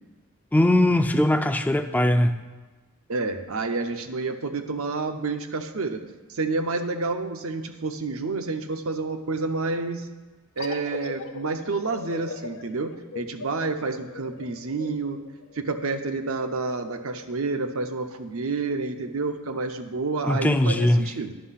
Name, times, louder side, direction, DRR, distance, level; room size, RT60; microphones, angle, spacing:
voice 1, 0.5-2.3 20.3-21.0, left 1 dB, 5° left, 8 dB, 0.3 m, -20 dB
voice 2, 3.1-6.0 6.3-10.1 10.6-15.2 15.6-21.3, right 3 dB, 70° right, 7 dB, 0.7 m, -29 dB
sound 1, 10.6-15.9, left 3 dB, 60° left, 0.7 m, -39 dB
10.0 x 5.5 x 5.7 m, 1.2 s
head